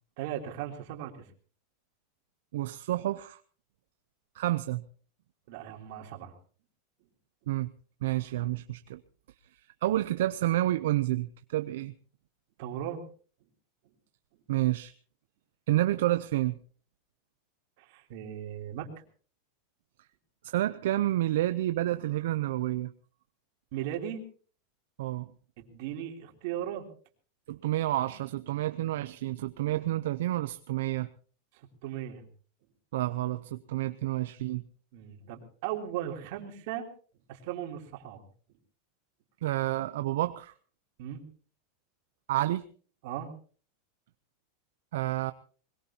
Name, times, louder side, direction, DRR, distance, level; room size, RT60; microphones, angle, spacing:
voice 1, 0.2-1.2 5.5-6.3 12.6-13.0 17.8-18.9 23.7-24.2 25.6-26.9 31.8-32.2 34.9-36.9 37.3-38.2 41.0-41.2 43.0-43.3, right 10 dB, 55° right, 3 dB, 3.2 m, -37 dB
voice 2, 2.5-3.4 4.3-4.8 7.5-7.7 8.0-9.0 9.5-11.9 14.5-14.9 15.7-16.6 20.4-22.9 25.0-25.3 27.5-31.1 32.9-34.6 39.4-40.5 42.3-42.6 44.9-45.3, right 15 dB, 75° right, 11 dB, 0.7 m, -29 dB
21.5 x 21.5 x 2.9 m, 0.42 s
supercardioid pair, 160°, 0 cm